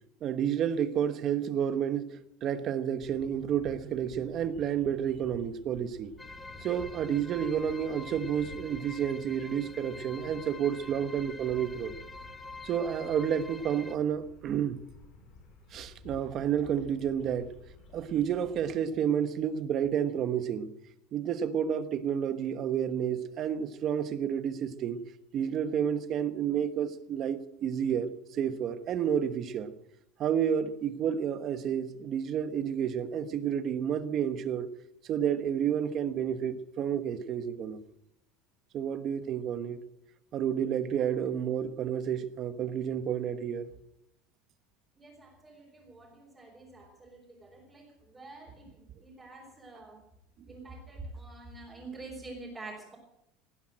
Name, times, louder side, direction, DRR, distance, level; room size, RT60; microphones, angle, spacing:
voice 1, 0.2-6.1 6.6-11.9 12.6-14.8 15.7-17.6 17.9-20.7 21.1-25.0 25.3-29.7 30.2-34.7 35.0-37.8 38.7-39.8 40.3-43.7, right 8 dB, 35° right, 1.2 m, -30 dB
sound 1, 3.0-18.7, left 3 dB, 35° left, 5.4 m, -53 dB
sound 2, 6.2-14.0, left 3 dB, 10° left, 0.7 m, -46 dB
voice 2, 45.0-50.0 50.5-53.0, right 2 dB, 10° right, 4.1 m, -47 dB
18.5 x 10.5 x 7.5 m
cardioid pair, 165°, 0 cm